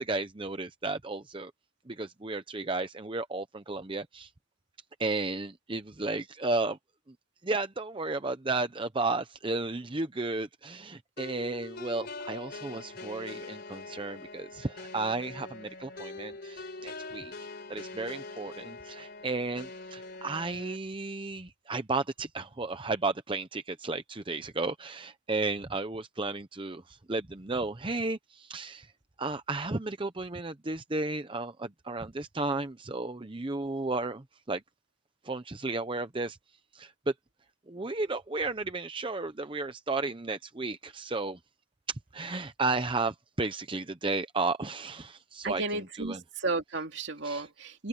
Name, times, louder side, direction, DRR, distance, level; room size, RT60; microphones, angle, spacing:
voice 1, 0.0-1.5 1.9-4.3 5.0-6.8 7.4-17.3 17.7-28.9 29.2-34.6 35.2-36.4 36.7-37.1 37.7-41.4 41.9-46.2 47.2-47.5, right 3 dB, 25° right, 0.8 m, -33 dB
sound 1, 11.2-20.8, left 3 dB, 55° left, 4.4 m, -43 dB
voice 2, 45.4-47.9, right 3 dB, 60° right, 2.9 m, -33 dB
head